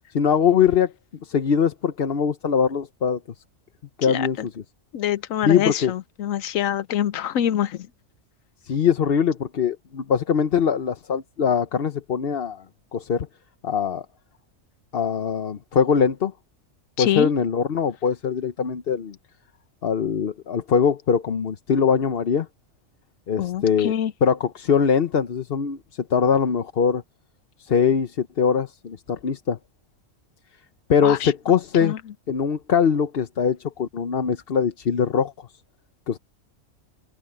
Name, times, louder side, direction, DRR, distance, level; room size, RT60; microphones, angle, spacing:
voice 1, 0.1-0.9 1.2-3.2 4.0-4.4 5.4-5.9 8.6-12.6 12.9-13.3 13.6-14.0 14.9-16.3 17.0-19.2 19.8-22.5 23.3-23.9 24.2-25.8 26.1-27.0 27.6-29.6 30.9-31.9 32.3-35.3 36.1-36.2, left 7 dB, 50° left, 1.0 m, -22 dB
voice 2, 4.1-4.5 4.9-7.9 17.0-17.3 23.4-24.1 31.0-31.6 31.8-32.0, left 11 dB, 85° left, 1.1 m, -25 dB
omnidirectional pair, 1.4 m